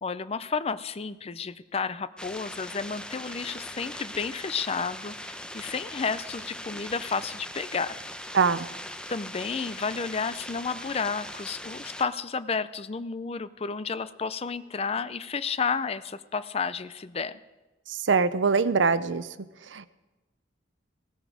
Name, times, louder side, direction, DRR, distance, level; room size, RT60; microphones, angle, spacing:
voice 1, 0.0-8.0 9.1-17.4, left 5 dB, 35° left, 15 dB, 0.5 m, -31 dB
sound 1, 2.2-12.0, left 1 dB, 5° left, 0.7 m, -40 dB
voice 2, 8.3-8.7 17.9-19.3 19.7-19.9, right 5 dB, 80° right, 15 dB, 0.6 m, -23 dB
18.0 x 14.0 x 5.0 m, 1.1 s
head